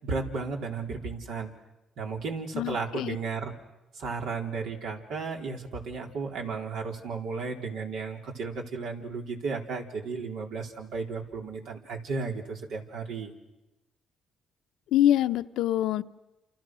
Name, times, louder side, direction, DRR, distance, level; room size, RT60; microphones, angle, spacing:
voice 1, 0.0-1.5 2.0-3.5 3.9-13.3, right 4 dB, 85° right, 1 dB, 4.1 m, -34 dB
voice 2, 2.5-3.2 14.9-16.0, left 12 dB, 85° left, 10 dB, 0.9 m, -25 dB
29.0 x 28.5 x 6.3 m, 1.0 s
cardioid pair, 90°, 0 cm